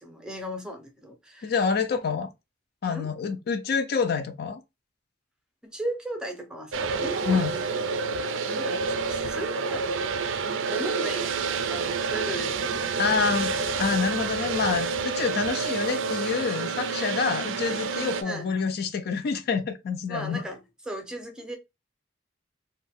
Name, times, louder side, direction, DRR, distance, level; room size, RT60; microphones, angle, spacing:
voice 1, 0.0-1.5 2.9-3.1 5.6-7.7 8.5-11.4 11.7-12.6 13.1-13.4 18.2-18.6 20.1-21.6, right 1 dB, 5° right, 0.6 m, -37 dB
voice 2, 1.4-2.3 2.8-4.6 7.3-7.5 13.0-13.5 13.8-20.4, left 5 dB, 55° left, 0.4 m, -27 dB
sound 1, 6.7-18.2, right 4 dB, 85° right, 0.4 m, -28 dB
2.5 x 2.2 x 3.5 m
head